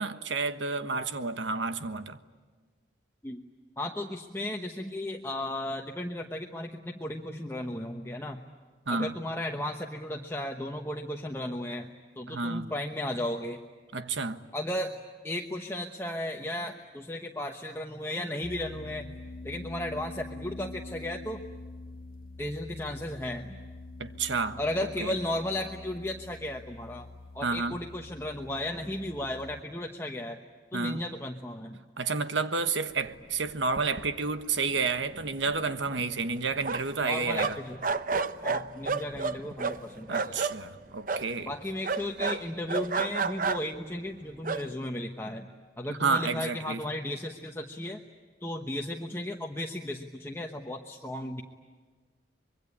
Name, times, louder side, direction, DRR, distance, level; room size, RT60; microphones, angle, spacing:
voice 1, 0.0-2.2 8.9-9.2 12.3-12.7 13.9-14.4 24.0-24.6 25.0-25.1 27.4-27.8 30.7-31.0 32.0-37.6 40.1-41.5 45.9-46.8, right 4 dB, 90° right, 1.3 m, -30 dB
voice 2, 3.8-8.4 8.9-13.6 14.5-14.9 15.2-19.1 19.4-21.4 22.4-23.6 24.6-27.1 27.3-30.4 30.7-31.8 37.0-37.8 38.4-40.4 41.5-45.5 45.8-48.0 48.4-51.4, left 1 dB, 15° left, 1.1 m, -35 dB
sound 1, 18.4-29.6, left 2 dB, 50° left, 0.7 m, -45 dB
sound 2, 33.5-33.6 33.8-34.4 34.7-34.8 35.1-37.0 37.4-40.6 41.1-41.3 41.8-43.8 44.4-44.6, right 4 dB, 45° right, 0.8 m, -31 dB
25.0 x 22.5 x 9.9 m
head